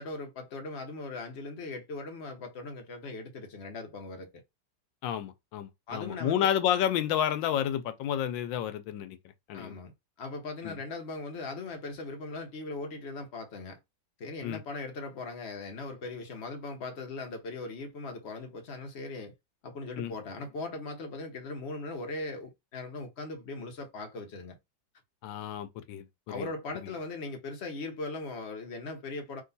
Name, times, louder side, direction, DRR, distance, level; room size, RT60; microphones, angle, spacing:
voice 1, 0.0-4.4 5.9-6.5 9.5-9.9 10.2-13.8 14.2-19.3 19.6-24.6 26.3-29.4, left 3 dB, 50° left, 0.8 m, -39 dB
voice 2, 5.0-9.2 9.5-9.8 10.6-10.8 14.4-14.6 20.0-20.1 25.2-26.5 26.8-26.9, left 10 dB, 80° left, 1.3 m, -30 dB
3.7 x 2.8 x 4.0 m
omnidirectional pair, 2.1 m